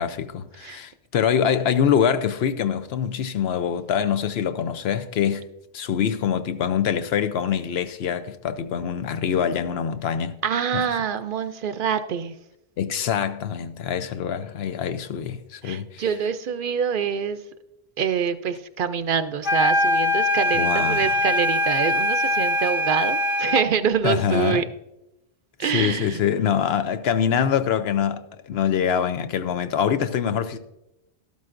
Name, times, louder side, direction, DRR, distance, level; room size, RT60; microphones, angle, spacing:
voice 1, 0.0-5.4 5.7-10.4 10.7-10.8 12.8-16.0 20.6-21.0 24.0-24.6 25.6-30.6, left 8 dB, 75° left, 0.9 m, -24 dB
voice 2, 10.4-12.4 15.6-17.4 18.0-24.6 25.6-26.2, right 7 dB, 60° right, 0.7 m, -25 dB
sound 1, 19.4-23.7, left 1 dB, 55° left, 1.4 m, -22 dB
12.5 x 12.0 x 2.5 m
omnidirectional pair, 1.1 m